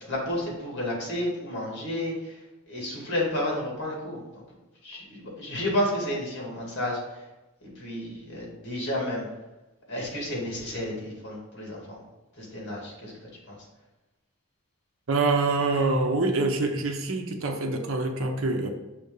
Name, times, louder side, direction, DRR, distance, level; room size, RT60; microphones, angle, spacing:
voice 1, 0.1-2.4 2.7-4.4 4.8-7.2 7.6-9.3 9.9-12.0 12.4-13.1 13.5-13.6, left 1 dB, 55° left, -3 dB, 2.4 m, -31 dB
voice 2, 15.1-18.7, right 3 dB, 65° right, 5 dB, 0.8 m, -25 dB
6.4 x 3.5 x 5.3 m, 1.1 s
head